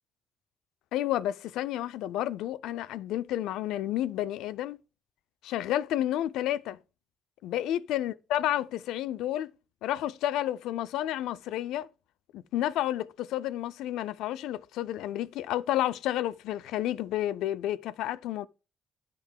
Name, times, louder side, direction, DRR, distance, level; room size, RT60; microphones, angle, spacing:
voice 1, 0.9-4.8 5.4-6.8 7.4-9.5 9.8-11.9 12.3-18.5, left 13 dB, 80° left, 0.4 m, -31 dB
10.5 x 3.7 x 7.2 m
supercardioid pair, 55°, 0 cm